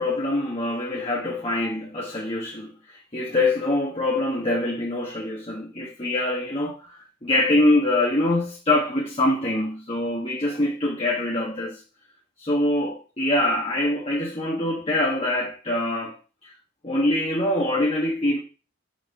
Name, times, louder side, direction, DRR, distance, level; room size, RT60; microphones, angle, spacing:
voice 1, 0.0-6.9 7.2-11.8 12.4-16.2 16.4-16.5 16.8-18.4, left 1 dB, 30° left, 1.5 m, -24 dB
6.4 x 4.5 x 5.5 m
head